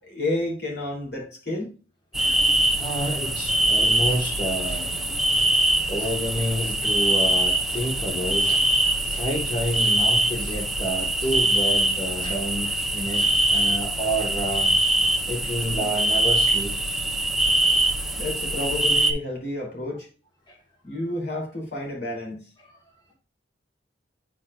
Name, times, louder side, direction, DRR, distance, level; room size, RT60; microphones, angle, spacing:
voice 1, 0.0-1.7 5.4-5.5 18.2-20.1 20.8-22.5, left 2 dB, 65° left, 2.9 m, -30 dB
sound 1, 2.1-19.1, right 1 dB, ahead, 0.6 m, -23 dB
voice 2, 2.2-2.5 2.8-5.5 5.9-8.7 9.0-14.7 15.3-16.8 20.5-20.6 22.7-23.1, right 1 dB, 25° left, 1.3 m, -29 dB
9.7 x 4.5 x 2.3 m
head